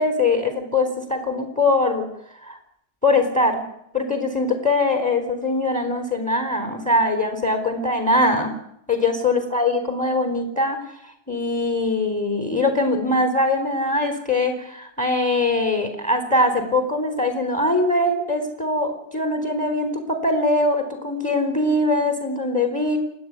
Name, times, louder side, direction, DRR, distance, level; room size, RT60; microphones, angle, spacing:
voice 1, 0.0-2.1 2.4-2.6 3.0-3.6 3.9-8.5 8.9-10.8 11.3-23.0, left 2 dB, 5° left, 6 dB, 3.8 m, -22 dB
28.0 x 12.0 x 9.7 m, 0.75 s
omnidirectional pair, 2.0 m